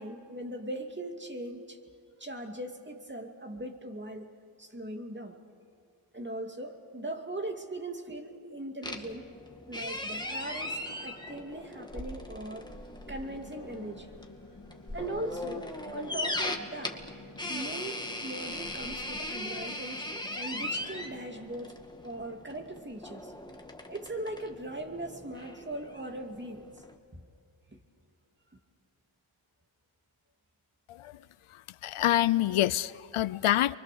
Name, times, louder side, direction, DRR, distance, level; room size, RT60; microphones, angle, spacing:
voice 1, 0.0-1.8 2.2-4.3 4.6-5.4 6.1-9.3 9.7-12.7 13.1-14.1 14.9-17.0 17.5-20.1 20.4-21.7 22.0-23.3 23.9-26.7 27.1-27.2 27.7-27.8, right 1 dB, 20° right, 4 dB, 2.6 m, -39 dB
sound 1, 8.8-26.9, left 1 dB, 10° left, 2.0 m, -39 dB
sound 2, 13.1-21.3, left 2 dB, 40° left, 3.2 m, -52 dB
voice 2, 31.8-33.8, left 13 dB, 80° left, 18 dB, 0.6 m, -26 dB
29.5 x 24.0 x 6.9 m, 2.2 s
cardioid pair, 60°, 50 cm